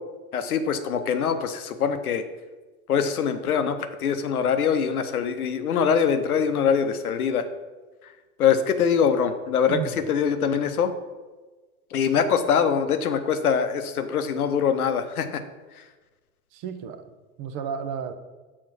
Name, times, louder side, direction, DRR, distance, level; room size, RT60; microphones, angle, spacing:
voice 1, 0.3-2.2 2.9-7.5 8.4-10.9 11.9-15.4 15.8-15.9, left 7 dB, 85° left, 9 dB, 0.7 m, -23 dB
voice 2, 9.7-10.0 16.5-18.1, right 7 dB, 50° right, 9 dB, 0.9 m, -33 dB
6.4 x 3.9 x 6.1 m, 1.3 s
hypercardioid pair, 80°, 43 cm